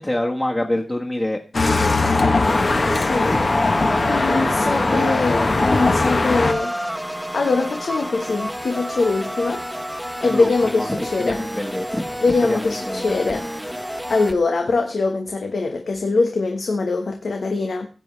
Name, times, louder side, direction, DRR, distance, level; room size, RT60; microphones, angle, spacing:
voice 1, 0.0-1.4 1.8-5.0 10.2-13.3, left 1 dB, 20° left, -1 dB, 1.5 m, -28 dB
sound 1, 1.5-6.5, left 3 dB, 55° left, 1.2 m, -20 dB
sound 2, 2.4-14.3, equal, ahead, 1.1 m, -29 dB
voice 2, 2.9-3.4 4.1-6.7 7.3-9.6 10.2-11.4 12.2-13.5 14.1-17.9, left 3 dB, 90° left, 3 dB, 1.3 m, -22 dB
16.0 x 8.8 x 3.3 m, 0.35 s
wide cardioid pair, 95°, 0 cm